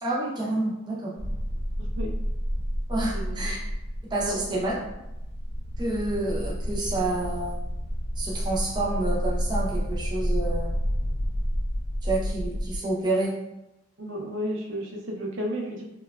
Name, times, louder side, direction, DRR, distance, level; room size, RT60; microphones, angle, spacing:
voice 1, 0.0-1.1 2.9-3.6 4.1-4.7 5.8-7.5 8.2-10.7 12.0-13.4, right 2 dB, 20° right, -4 dB, 0.5 m, -28 dB
sound 1, 1.2-12.8, equal, 40° left, 0.4 m, -30 dB
voice 2, 1.8-2.1 3.1-3.6 4.3-4.7 14.0-15.8, equal, 70° right, -1 dB, 0.5 m, -33 dB
2.8 x 2.2 x 2.2 m, 0.89 s
head